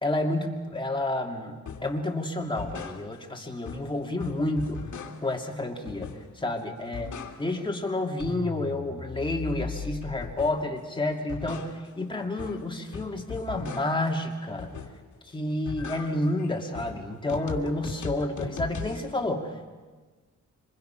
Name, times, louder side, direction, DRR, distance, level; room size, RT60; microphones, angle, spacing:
voice 1, 0.0-4.9 5.2-6.1 6.4-7.1 7.4-14.7 15.3-19.7, left 1 dB, 15° left, 1 dB, 2.5 m, -30 dB
sound 1, 1.7-2.0 2.4-3.4 3.6-5.4 5.9-6.5 6.8-7.7 8.0-10.8 11.1-14.1 14.6-15.2 15.5-19.1, left 6 dB, 70° left, 2.4 m, -39 dB
26.5 x 25.5 x 5.9 m, 1.4 s
wide cardioid pair, 140°, 30 cm